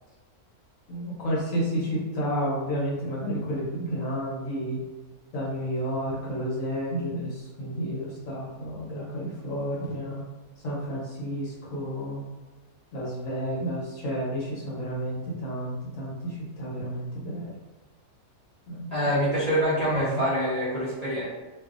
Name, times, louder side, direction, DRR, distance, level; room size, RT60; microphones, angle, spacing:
voice 1, 0.9-4.8 5.3-10.2 10.6-12.2 12.9-17.5 18.7-19.4 20.0-20.2, equal, 65° left, -6 dB, 1.2 m, -31 dB
voice 2, 18.9-21.3, equal, 45° right, -11 dB, 0.5 m, -25 dB
2.6 x 2.5 x 2.4 m, 1.2 s
omnidirectional pair, 1.5 m